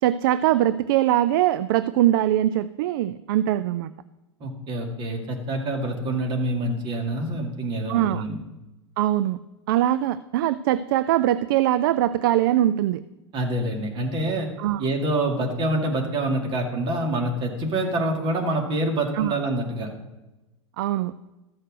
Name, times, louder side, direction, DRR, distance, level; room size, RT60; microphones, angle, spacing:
voice 1, 0.0-3.9 7.9-8.2 9.0-9.4 9.7-13.0 14.6-14.8 19.1-19.4 20.8-21.1, right 13 dB, 45° right, 14 dB, 0.4 m, -22 dB
voice 2, 4.4-8.4 13.3-14.5 14.8-19.9, right 1 dB, 30° right, 3 dB, 2.1 m, -26 dB
13.5 x 6.5 x 6.3 m, 1.0 s
figure-of-eight pair, 90°, 15 cm